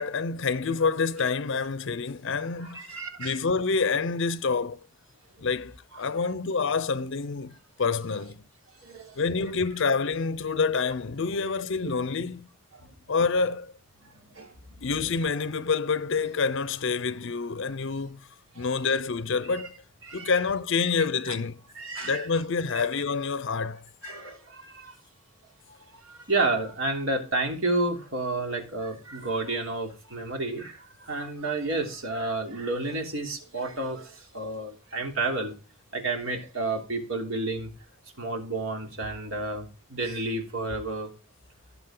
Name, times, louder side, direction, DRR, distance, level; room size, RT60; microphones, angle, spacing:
voice 1, 0.0-4.8 5.4-8.4 9.2-12.5 13.1-13.7 14.8-18.2 18.6-19.7 20.1-21.6 22.0-23.8, left 4 dB, 60° left, 0.6 m, -27 dB
voice 2, 2.7-3.4 5.3-5.5 8.8-9.2 12.7-12.9 14.0-14.6 18.5-18.7 19.5-19.6 20.1-20.4 21.3-21.4 21.7-22.2 22.7-22.9 24.0-24.9 25.9-35.5 35.9-37.7 38.2-41.1, right 2 dB, 70° right, 3.3 m, -31 dB
17.5 x 7.2 x 3.8 m
head